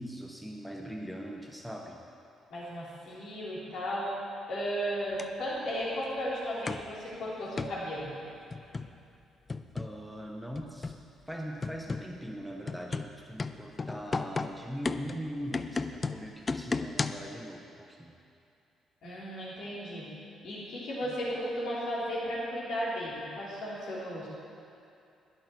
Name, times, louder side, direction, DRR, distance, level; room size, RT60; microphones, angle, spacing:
voice 1, 0.0-2.0 9.7-10.9 11.3-18.1 21.0-21.2, equal, 5° right, 0 dB, 1.0 m, -41 dB
voice 2, 2.5-4.1 4.5-8.1 19.0-20.1 20.4-24.3, equal, 55° left, -7 dB, 3.4 m, -35 dB
sound 1, 5.2-5.3 6.7-6.9 7.6-7.8 8.5-9.0 9.5-10.0 10.6-11.0 11.6-12.2 12.7-17.3, left 4 dB, 30° left, 0.5 m, -34 dB
11.5 x 11.0 x 4.6 m, 2.6 s
figure-of-eight pair, 45°, 0 cm